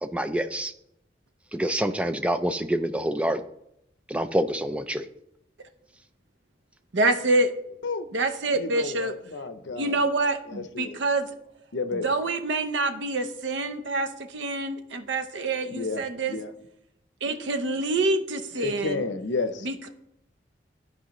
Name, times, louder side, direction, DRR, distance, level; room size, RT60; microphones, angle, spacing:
voice 1, 0.0-0.7 1.5-3.4 4.1-5.1, right 1 dB, 5° right, 9 dB, 0.3 m, -27 dB
voice 2, 6.9-7.8 8.1-9.1 9.8-11.3 11.9-16.4 17.2-19.1 19.6-19.9, right 2 dB, 85° right, 8 dB, 0.8 m, -26 dB
voice 3, 8.6-10.0 10.7-11.0 11.7-12.0 15.7-16.0 16.3-16.5 18.6-19.7, left 3 dB, 85° left, 10 dB, 0.7 m, -31 dB
13.5 x 4.8 x 3.1 m, 0.79 s
head